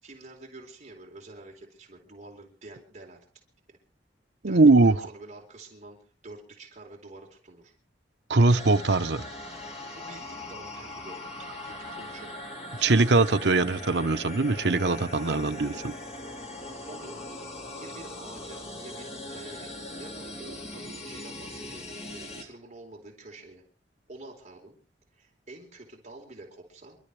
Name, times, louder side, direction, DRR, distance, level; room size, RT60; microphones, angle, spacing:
voice 1, 0.0-3.2 3.7-3.8 4.5-7.7 9.9-11.3 11.6-13.6 15.1-15.8 16.9-17.2 17.8-23.6 24.1-24.8 25.1-27.0, right 2 dB, 40° right, 4.2 m, -48 dB
voice 2, 4.4-5.0 8.3-9.3 12.8-15.9, right 3 dB, 70° right, 0.9 m, -21 dB
sound 1, 8.5-22.4, left 1 dB, 35° left, 3.0 m, -40 dB
28.5 x 13.0 x 3.3 m
head